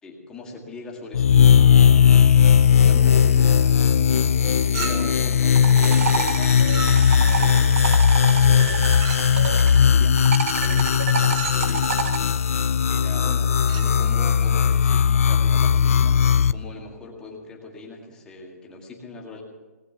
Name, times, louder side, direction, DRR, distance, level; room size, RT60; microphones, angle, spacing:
voice 1, 0.0-2.2 2.7-3.7 4.5-7.9 8.3-8.8 9.6-10.2 10.5-12.0 12.9-19.4, left 3 dB, 10° left, -1 dB, 2.1 m, -40 dB
sound 1, 1.1-16.5, left 7 dB, 60° left, 0.5 m, -18 dB
Chink clink, 4.7-5.3 6.6-7.3 9.0-9.4 11.1-11.7 13.6-14.0, right 4 dB, 25° right, 1.3 m, -34 dB
sound 2, 5.2-9.8 10.2-12.2, right 5 dB, 60° right, 1.4 m, -29 dB
19.0 x 8.3 x 7.9 m, 1.3 s
hypercardioid pair, 165°, 9 cm